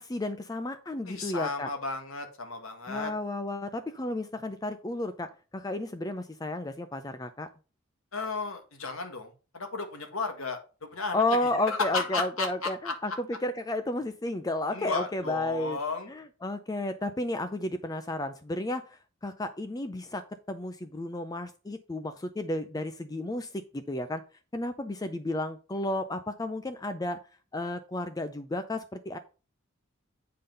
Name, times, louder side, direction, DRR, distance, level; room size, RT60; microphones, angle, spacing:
voice 1, 0.0-1.7 2.9-7.5 11.1-15.8 16.1-24.2 24.5-27.2 27.5-29.2, left 1 dB, 15° left, 10 dB, 0.4 m, -32 dB
voice 2, 1.1-3.1 8.1-10.6 10.9-11.4 11.7-12.9 14.7-16.1, left 3 dB, 70° left, 5 dB, 1.7 m, -34 dB
8.5 x 3.8 x 5.2 m, 0.35 s
head